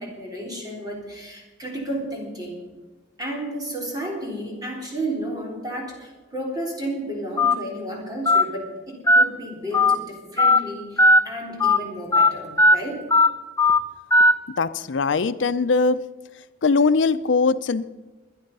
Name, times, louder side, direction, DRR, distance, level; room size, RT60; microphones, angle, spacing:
voice 1, 0.0-2.7 3.2-13.0, right 1 dB, 20° right, -1 dB, 3.9 m, -32 dB
Telephone, 7.4-7.5 8.2-8.4 9.1-9.2 9.7-9.9 10.4-10.6 11.0-11.2 11.6-11.8 12.1-12.3 12.6-12.7 13.1-13.3 13.6-13.8 14.1-14.3, left 2 dB, 15° left, 0.8 m, -15 dB
voice 2, 14.6-16.0 16.6-17.9, left 4 dB, 80° left, 13 dB, 0.6 m, -21 dB
22.5 x 10.5 x 5.4 m, 1.2 s
head